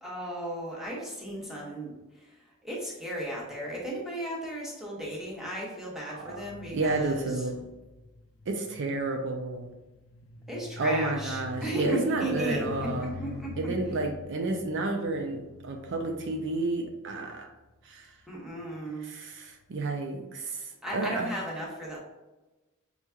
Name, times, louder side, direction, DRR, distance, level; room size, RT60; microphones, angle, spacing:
voice 1, 0.0-2.3 2.6-7.4 10.5-13.7 18.3-19.1 20.8-22.0, right 1 dB, ahead, -5 dB, 1.0 m, -35 dB
sound 1, 6.2-17.8 18.6-18.9, left 4 dB, 60° left, 0.4 m, -44 dB
voice 2, 6.7-7.6 8.5-9.7 10.8-13.1 13.6-17.5 17.9-18.1 19.0-21.3, right 2 dB, 60° right, 3 dB, 0.5 m, -31 dB
5.3 x 3.1 x 2.3 m, 1.1 s
head